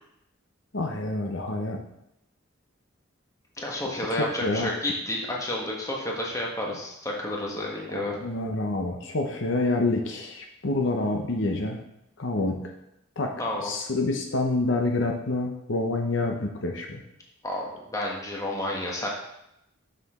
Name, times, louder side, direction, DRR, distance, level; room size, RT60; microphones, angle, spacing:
voice 1, 0.7-1.8 4.1-4.7 7.9-11.8 12.2-12.6 13.2-13.3 13.6-17.0, left 2 dB, 65° left, 2 dB, 0.8 m, -27 dB
voice 2, 3.6-8.2 13.4-13.7 17.4-17.6 17.9-19.1, left 1 dB, 15° left, -2 dB, 1.3 m, -30 dB
6.9 x 6.8 x 3.7 m, 0.82 s
head